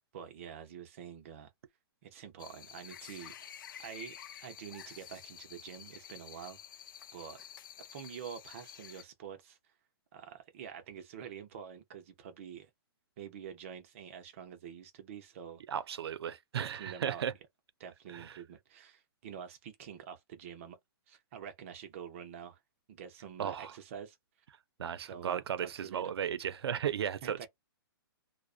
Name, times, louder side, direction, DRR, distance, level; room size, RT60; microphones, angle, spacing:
voice 1, 0.0-1.5 2.0-3.5 3.8-6.8 7.1-7.4 7.8-9.6 10.1-12.7 13.2-15.6 16.6-17.2 17.8-20.8 21.1-22.6 22.9-24.2 25.1-26.1 27.2-27.5, right 8 dB, 30° right, 0.6 m, -47 dB
sound 1, 2.4-9.0, left 10 dB, 55° left, 0.4 m, -50 dB
voice 2, 15.7-17.3 18.1-18.3 23.4-23.7 24.8-27.5, right 8 dB, 80° right, 0.5 m, -35 dB
2.5 x 2.1 x 2.4 m
hypercardioid pair, 170°, 13 cm